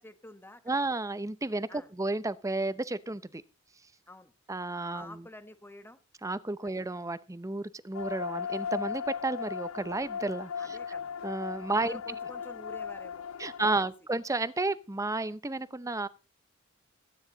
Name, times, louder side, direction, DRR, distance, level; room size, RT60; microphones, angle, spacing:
voice 1, 0.0-0.9 1.7-1.9 4.1-4.3 4.9-6.0 6.6-6.8 10.6-11.1 11.7-13.9, left 1 dB, 10° left, 1.2 m, -49 dB
voice 2, 0.7-3.4 4.5-5.2 6.2-10.8 11.2-12.0 13.4-16.1, right 2 dB, 15° right, 0.7 m, -32 dB
sound 1, 7.9-13.7, left 7 dB, 75° left, 0.5 m, -37 dB
15.5 x 9.6 x 4.0 m
head